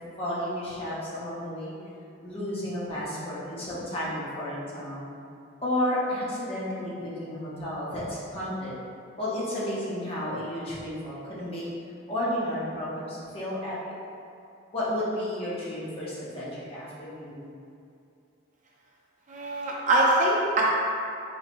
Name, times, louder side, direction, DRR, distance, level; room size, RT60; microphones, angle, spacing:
voice 1, 0.2-1.7 2.2-5.1 5.6-8.7 9.2-11.7 12.1-14.0 14.7-17.5, left 1 dB, 30° left, -8 dB, 0.8 m, -32 dB
voice 2, 19.3-20.6, right 2 dB, 40° right, -5 dB, 0.5 m, -23 dB
4.3 x 2.7 x 2.6 m, 2.6 s
head